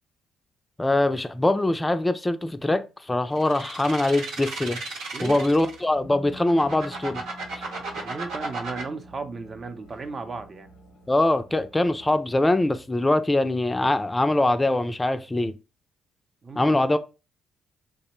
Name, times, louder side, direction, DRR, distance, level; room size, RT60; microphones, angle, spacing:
voice 1, 0.8-4.8 5.2-7.2 11.1-15.5 16.6-17.0, left 2 dB, 20° left, 0.4 m, -23 dB
sound 1, 3.4-5.8 6.3-8.8, right 3 dB, 85° right, 0.9 m, -34 dB
voice 2, 5.1-5.5 7.9-10.7 16.4-16.8, right 4 dB, 40° right, 0.6 m, -35 dB
sound 2, 5.2-12.8, right 1 dB, 80° left, 0.7 m, -48 dB
3.2 x 2.1 x 2.9 m
supercardioid pair, 60°, 0 cm